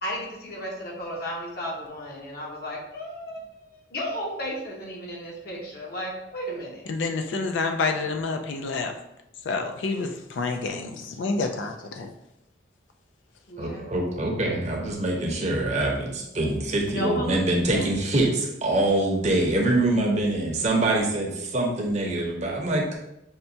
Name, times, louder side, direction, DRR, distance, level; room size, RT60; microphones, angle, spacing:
voice 1, 0.0-6.8 13.5-14.2 16.8-17.9 19.9-20.2, equal, 55° left, -2 dB, 0.9 m, -34 dB
voice 2, 6.9-8.9 9.5-12.1, left 3 dB, 80° left, 5 dB, 0.4 m, -28 dB
voice 3, 13.6-22.9, right 2 dB, 40° right, 0 dB, 0.7 m, -24 dB
5.7 x 2.2 x 2.7 m, 0.84 s
head